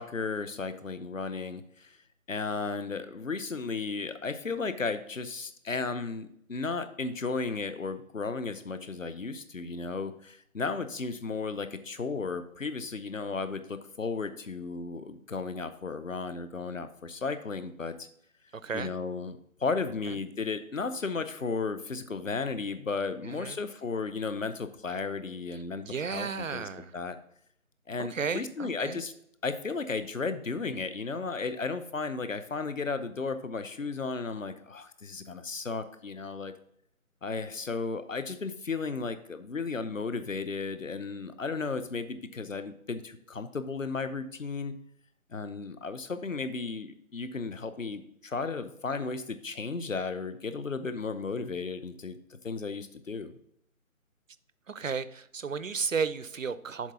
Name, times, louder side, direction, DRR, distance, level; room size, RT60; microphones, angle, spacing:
voice 1, 0.0-2.0 2.3-18.1 18.7-27.2 27.9-29.1 29.4-36.5 37.2-44.7 45.3-52.2 52.4-53.3, left 4 dB, 65° left, 11 dB, 0.8 m, -34 dB
voice 2, 18.6-18.9 20.1-20.2 23.2-23.6 25.8-27.0 28.1-29.0 54.7-56.9, right 5 dB, 65° right, 15 dB, 0.5 m, -33 dB
7.3 x 3.8 x 5.7 m, 0.70 s
figure-of-eight pair, 160°, 43 cm